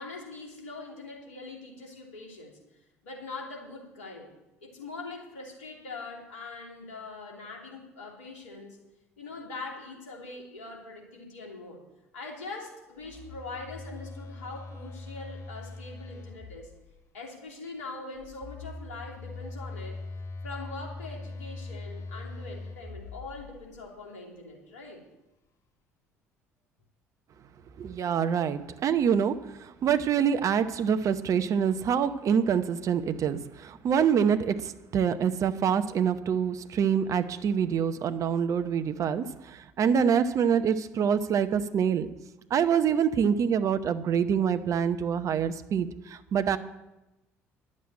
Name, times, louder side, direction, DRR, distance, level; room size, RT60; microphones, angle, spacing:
voice 1, 0.0-2.6 3.0-4.3 4.6-8.8 9.2-11.8 12.1-16.7 17.1-20.0 20.4-25.0, left 3 dB, 80° left, -1 dB, 2.9 m, -42 dB
Telephone, 13.0-17.0 18.2-23.9, left 3 dB, 40° left, 1.1 m, -42 dB
voice 2, 27.8-42.1 42.5-46.6, right 7 dB, 45° right, 11 dB, 0.8 m, -26 dB
11.0 x 7.5 x 8.8 m, 0.97 s
hypercardioid pair, 60°, 7 cm